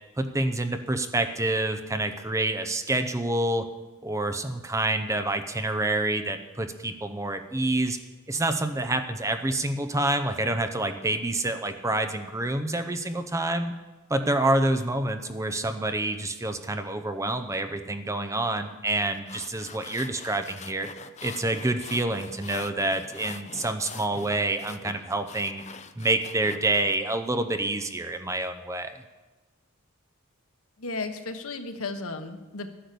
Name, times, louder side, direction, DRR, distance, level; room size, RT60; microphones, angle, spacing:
voice 1, 0.2-3.6 4.0-8.0 8.3-13.7 14.1-20.9 21.2-25.6 26.0-29.0, right 2 dB, 15° right, 7 dB, 0.7 m, -27 dB
sound 1, 19.0-27.0, left 6 dB, 30° left, 0.5 m, -44 dB
voice 2, 30.8-32.7, left 3 dB, 75° left, 7 dB, 1.2 m, -34 dB
13.0 x 10.0 x 6.8 m, 1.2 s
head